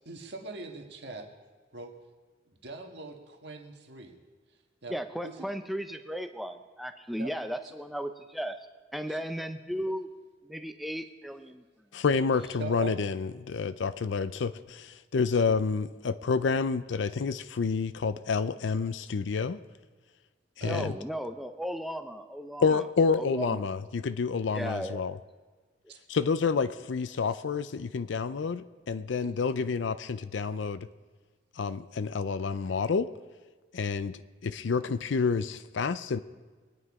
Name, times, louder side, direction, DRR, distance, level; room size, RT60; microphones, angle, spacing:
voice 1, 0.0-1.3 1.7-1.9 2.6-4.2 4.8-5.5 7.2-7.3 7.6-7.7 9.1-9.2 12.6-13.0 20.6-20.9 25.9-26.0 29.2-29.3, right 3 dB, 65° right, 3 dB, 1.7 m, -41 dB
voice 2, 4.9-8.6 8.9-10.1 10.4-11.6 20.7-22.8 23.2-23.7 24.5-25.1, equal, ahead, 7 dB, 0.7 m, -35 dB
voice 3, 11.9-19.6 20.6-20.9 22.6-25.1 26.1-30.9 31.6-33.1 33.7-36.2, left 5 dB, 80° left, 13 dB, 0.5 m, -29 dB
23.5 x 9.6 x 4.8 m, 1.4 s
head